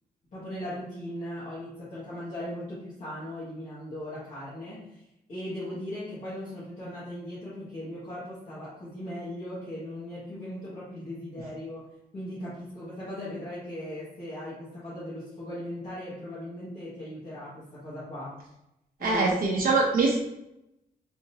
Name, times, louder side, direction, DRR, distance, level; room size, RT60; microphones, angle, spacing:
voice 1, 0.3-5.0 5.3-11.9 12.1-18.4 19.0-19.4, left 1 dB, 50° left, -10 dB, 1.3 m, -38 dB
voice 2, 19.0-20.2, right 3 dB, 65° right, -3 dB, 0.7 m, -23 dB
3.5 x 2.9 x 2.8 m, 0.86 s
wide cardioid pair, 145°, 16 cm